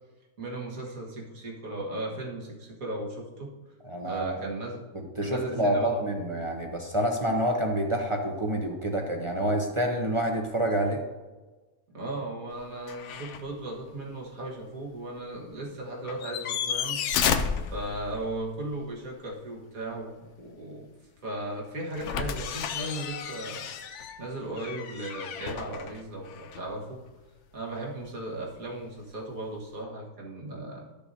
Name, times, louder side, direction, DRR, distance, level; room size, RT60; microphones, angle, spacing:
voice 1, 0.4-3.5 4.0-4.8 5.2-6.0 11.9-17.0 17.7-20.9 21.2-23.7 24.2-27.0 27.5-30.9, right 1 dB, 65° right, -2 dB, 2.0 m, -36 dB
voice 2, 3.9-4.4 4.9-11.0, right 1 dB, 30° right, 2 dB, 0.6 m, -28 dB
sound 1, 12.9-13.5 13.9-14.0 16.0-18.4 21.9-26.7 28.8-28.9, left 7 dB, 65° left, 0.8 m, -32 dB
12.5 x 6.8 x 2.7 m, 1.2 s
omnidirectional pair, 1.6 m